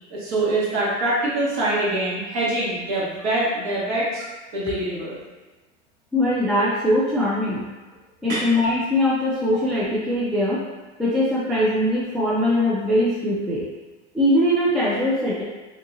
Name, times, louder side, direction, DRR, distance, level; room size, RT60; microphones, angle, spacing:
voice 1, 0.1-4.2 4.5-5.2 8.3-8.5, right 1 dB, 45° right, -7 dB, 1.3 m, -24 dB
voice 2, 6.1-7.7 8.2-10.6 11.0-13.6 14.1-15.4, left 1 dB, ahead, -8 dB, 0.3 m, -21 dB
2.9 x 2.6 x 2.4 m, 1.2 s
hypercardioid pair, 110°, 36 cm